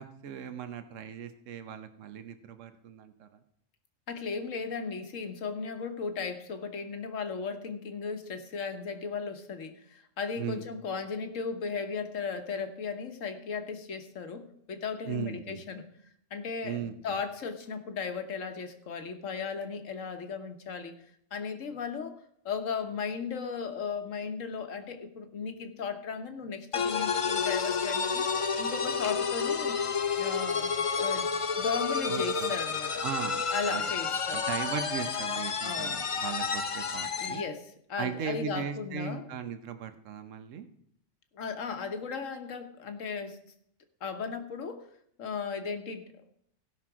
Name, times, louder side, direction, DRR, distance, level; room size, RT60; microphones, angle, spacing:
voice 1, 0.0-3.3 10.4-10.6 15.1-15.6 16.6-17.2 32.1-32.5 33.0-33.4 33.7-33.9 34.3-37.4 38.0-40.7, right 8 dB, 80° right, 9 dB, 1.2 m, -38 dB
voice 2, 4.1-15.9 16.3-20.9 21.3-22.2 22.4-28.3 28.6-29.8 30.2-31.3 31.5-33.0 33.5-34.4 35.6-36.0 37.1-39.2 41.3-43.4 44.0-44.9 45.2-46.1, left 5 dB, 85° left, 7 dB, 1.5 m, -36 dB
sound 1, 26.7-37.5, left 5 dB, 40° left, 0.5 m, -30 dB
16.0 x 5.9 x 4.8 m, 0.71 s
omnidirectional pair, 1.3 m